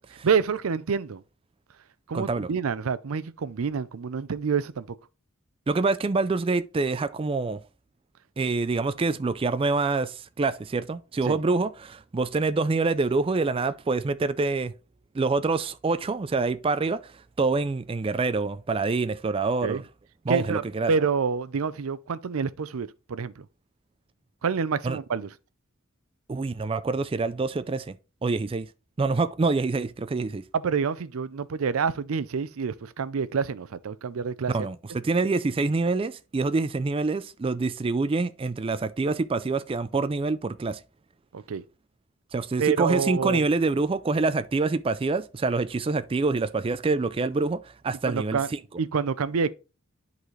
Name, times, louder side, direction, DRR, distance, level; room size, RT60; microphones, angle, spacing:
voice 1, 0.2-1.2 2.1-4.9 11.2-11.4 19.6-19.8 20.3-20.6 20.9-23.5 24.4-25.3 30.5-34.5 41.3-41.6 42.6-43.4 48.1-48.5 48.8-49.5, right 6 dB, 85° right, 0.5 m, -27 dB
voice 2, 2.1-2.5 5.7-7.6 8.4-14.7 15.1-17.0 17.4-19.8 20.3-20.9 24.8-25.0 26.3-28.0 28.2-28.7 29.0-30.4 34.5-40.8 42.3-48.6, right 3 dB, 25° right, 0.4 m, -26 dB
10.5 x 4.0 x 3.1 m
head